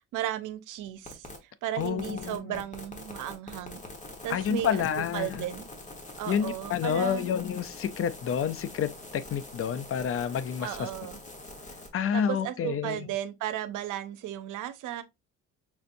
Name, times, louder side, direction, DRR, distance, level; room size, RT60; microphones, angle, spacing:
voice 1, 0.1-3.8 4.2-4.8 5.1-5.7 6.2-7.3 10.6-11.2 12.1-15.0, right 12 dB, 85° right, 0.7 m, -35 dB
sound 1, 1.1-1.4 1.8-11.9, left 2 dB, 25° left, 1.2 m, -44 dB
voice 2, 1.8-2.6 4.3-5.5 6.3-10.9 11.9-13.1, left 8 dB, 50° left, 0.5 m, -29 dB
5.6 x 2.6 x 2.6 m
cardioid pair, 90°, 30 cm